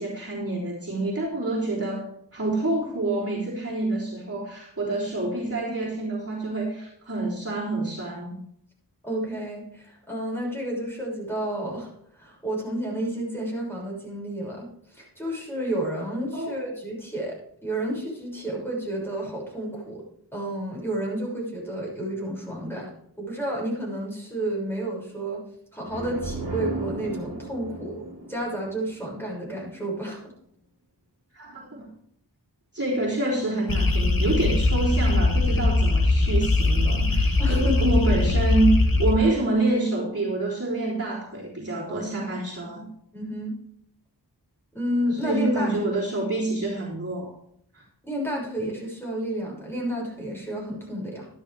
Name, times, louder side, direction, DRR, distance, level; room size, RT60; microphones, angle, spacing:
voice 1, 0.0-8.4 16.3-16.6 31.3-31.9 32.7-42.9 45.1-47.3 47.7-47.8, right 2 dB, 35° right, -6 dB, 3.6 m, -27 dB
voice 2, 9.0-11.9 12.2-20.0 20.3-22.9 23.2-25.4 25.7-30.2 37.4-37.8 41.9-42.4 43.1-43.5 44.7-46.0 48.0-51.3, right 1 dB, 5° left, -3 dB, 6.2 m, -31 dB
sound 1, 25.9-29.6, right 2 dB, 60° right, 2.6 m, -35 dB
sound 2, 33.7-39.1, left 2 dB, 55° left, 1.4 m, -21 dB
12.5 x 12.0 x 3.5 m, 0.67 s
wide cardioid pair, 50°, 42 cm